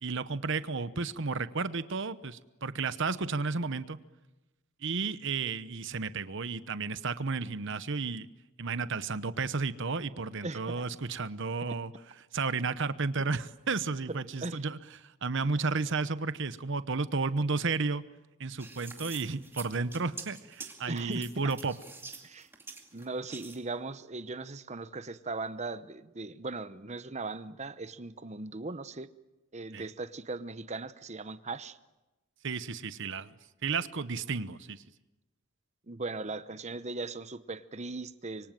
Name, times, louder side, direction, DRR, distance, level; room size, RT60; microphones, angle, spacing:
voice 1, 0.0-4.0 4.8-8.3 8.6-11.9 12.3-18.0 18.4-21.7 29.7-29.9 32.4-34.8, right 4 dB, 60° right, 13 dB, 1.0 m, -32 dB
voice 2, 10.4-10.8 14.4-14.6 20.9-21.5 22.2-22.5 22.9-29.1 29.5-31.8 35.9-38.5, right 3 dB, 30° right, 13 dB, 0.9 m, -38 dB
sound 1, 18.6-23.6, right 3 dB, 10° right, 2.4 m, -46 dB
26.0 x 24.0 x 7.6 m, 1.1 s
head